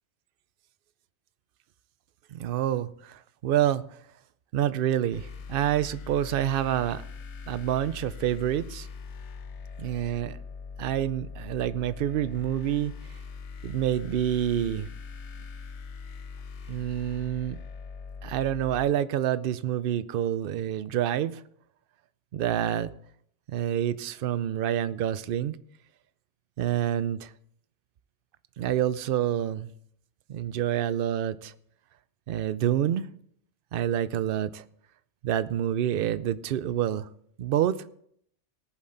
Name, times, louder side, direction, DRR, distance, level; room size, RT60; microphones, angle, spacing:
voice 1, 2.3-3.8 4.5-7.0 7.5-8.9 9.8-10.4 10.8-12.9 13.6-14.9 16.7-17.6 18.2-21.4 22.3-22.9 23.5-25.6 26.6-27.3 28.6-29.7 30.3-31.5 32.3-33.1 33.7-34.6 35.2-37.1 37.4-37.8, right 11 dB, 60° right, 0.6 m, -27 dB
sound 1, 5.1-18.8, left 5 dB, 70° left, 1.1 m, -41 dB
18.5 x 7.3 x 3.8 m
omnidirectional pair, 1.3 m